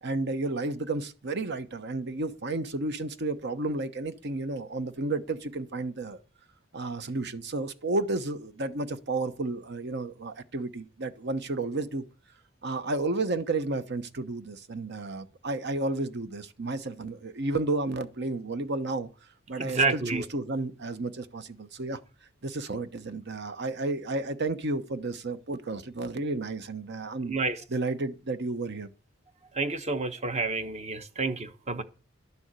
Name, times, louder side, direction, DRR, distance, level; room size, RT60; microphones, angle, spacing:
voice 1, 0.0-6.2 6.7-12.0 12.6-19.1 19.5-22.0 22.4-27.4 27.7-28.9, right 2 dB, 60° right, 1.0 m, -32 dB
voice 2, 19.6-20.2 27.3-27.6 29.6-31.8, right 3 dB, 35° right, 1.0 m, -29 dB
11.5 x 7.0 x 8.2 m
head